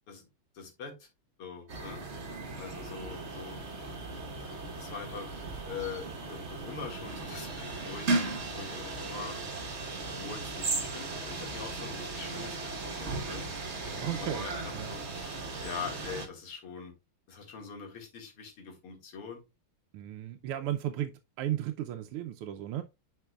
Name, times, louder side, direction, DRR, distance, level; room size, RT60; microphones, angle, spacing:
voice 1, 0.5-1.1 1.4-2.0 2.6-3.6 4.8-5.3 5.6-9.5 10.1-13.4 13.8-16.9 17.3-19.4, left 6 dB, 85° left, 2.8 m, -43 dB
sound 1, 1.7-16.3, right 3 dB, 40° right, 1.1 m, -36 dB
voice 2, 14.0-14.4 14.7-15.0 19.9-21.1 21.4-22.8, right 12 dB, 85° right, 1.5 m, -34 dB
9.0 x 5.0 x 2.3 m
omnidirectional pair, 2.4 m